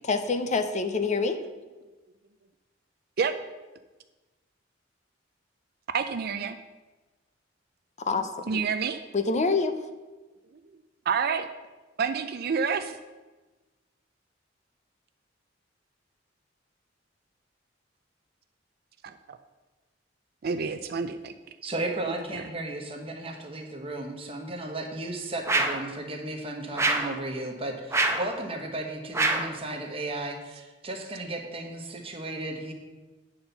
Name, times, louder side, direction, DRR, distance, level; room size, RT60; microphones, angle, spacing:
voice 1, 0.0-1.4 8.1-8.6 9.1-9.7, left 4 dB, 40° left, 9 dB, 0.6 m, -26 dB
voice 2, 5.9-6.6 8.5-9.0 11.1-11.5 12.0-13.0 19.0-19.4 20.4-21.3 22.3-22.4, right 6 dB, 55° right, 9 dB, 0.4 m, -28 dB
voice 3, 21.6-32.7, right 2 dB, 30° right, 2 dB, 1.2 m, -35 dB
sound 1, 25.5-25.9 26.8-27.2 27.9-28.3 29.1-29.5, right 2 dB, 15° right, 0.8 m, -25 dB
8.7 x 4.4 x 6.7 m, 1.2 s
head